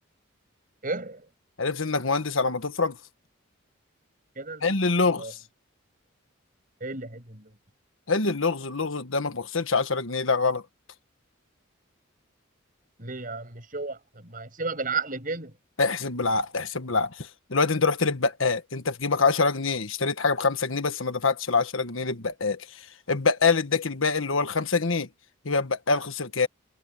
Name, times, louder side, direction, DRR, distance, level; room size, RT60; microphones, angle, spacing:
voice 1, 0.8-1.3 4.4-4.6 5.2-5.3 6.8-7.5 13.0-15.5, right 4 dB, 40° right, 7.1 m, -33 dB
voice 2, 1.6-3.0 4.6-5.4 8.1-10.6 15.8-25.1 25.4-26.5, left 4 dB, 75° left, 1.4 m, -25 dB
head